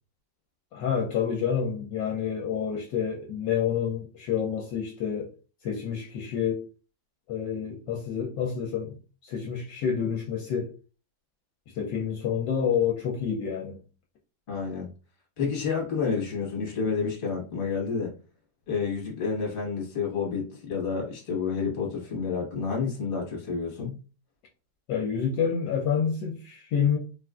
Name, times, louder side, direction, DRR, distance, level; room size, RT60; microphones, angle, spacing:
voice 1, 0.7-5.3 5.6-6.7 7.3-9.0 9.2-10.7 11.7-13.8 24.9-27.0, left 7 dB, 75° left, 1.1 m, -28 dB
voice 2, 14.5-14.9 15.4-18.1 18.7-24.0, left 5 dB, 35° left, 1.1 m, -29 dB
3.4 x 2.4 x 2.3 m
omnidirectional pair, 2.1 m